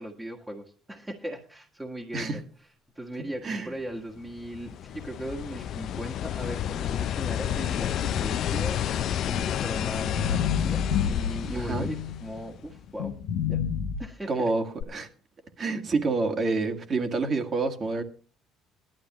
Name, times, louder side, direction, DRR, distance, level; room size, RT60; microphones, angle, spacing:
voice 1, 0.0-2.4 2.9-13.1 13.5-13.6 14.0-14.5, right 1 dB, 10° right, -1 dB, 1.7 m, -38 dB
sound 1, 4.2-12.7 14.8-14.9, left 10 dB, 60° left, 0.5 m, -31 dB
sound 2, 8.4-12.5 13.0-14.0, left 7 dB, 85° left, 1.1 m, -30 dB
voice 2, 11.5-11.9 14.3-14.6 14.9-15.1 15.6-18.0, right 3 dB, 35° right, 6 dB, 1.9 m, -27 dB
18.0 x 12.0 x 3.0 m, 0.39 s
cardioid pair, 110°, 0 cm